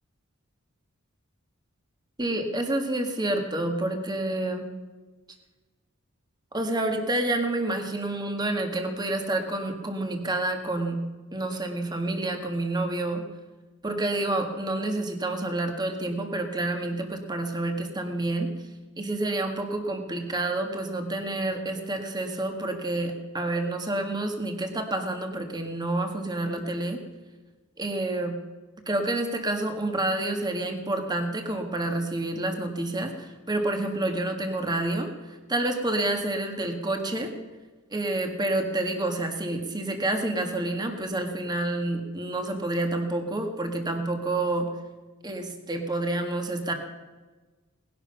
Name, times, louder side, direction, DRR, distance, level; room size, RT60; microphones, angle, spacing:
voice 1, 2.2-4.7 6.5-11.0 11.3-13.2 13.8-18.5 19.0-27.0 27.8-28.4 28.9-37.3 37.9-44.7 45.2-46.7, right 2 dB, 20° right, 4 dB, 1.8 m, -28 dB
19.0 x 11.0 x 5.6 m, 1.3 s
head